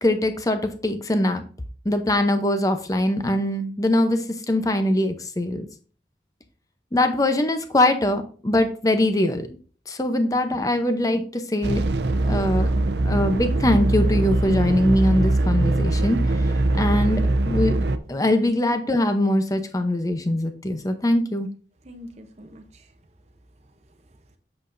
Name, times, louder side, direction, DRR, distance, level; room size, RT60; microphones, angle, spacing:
voice 1, 0.0-1.4 1.8-5.7 6.9-9.5 9.9-11.8 12.3-12.7 13.0-16.2 16.7-17.8 18.1-21.5, left 1 dB, 20° left, 8 dB, 0.8 m, -22 dB
sound 1, 11.6-18.0, right 2 dB, 75° right, 0.6 m, -22 dB
voice 2, 16.6-17.1 21.8-23.0 23.6-24.4, equal, 40° right, 4 dB, 0.8 m, -46 dB
8.0 x 6.7 x 2.6 m, 0.41 s
head